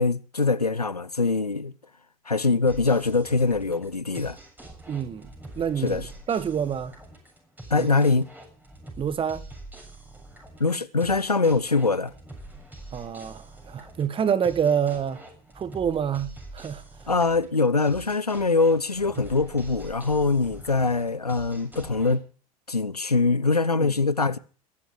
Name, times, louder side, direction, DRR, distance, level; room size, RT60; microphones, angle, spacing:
voice 1, 0.0-1.7 2.3-4.4 5.8-6.0 7.7-8.3 10.6-12.1 17.1-22.2 22.7-24.4, left 3 dB, 90° left, 0.9 m, -23 dB
sound 1, 2.7-22.1, right 2 dB, 10° right, 7.2 m, -45 dB
voice 2, 4.9-6.9 7.7-7.9 9.0-9.5 12.9-15.2 15.5-16.8 23.8-23.9, right 8 dB, 30° right, 1.7 m, -27 dB
21.5 x 12.0 x 4.8 m
figure-of-eight pair, 75°, 19 cm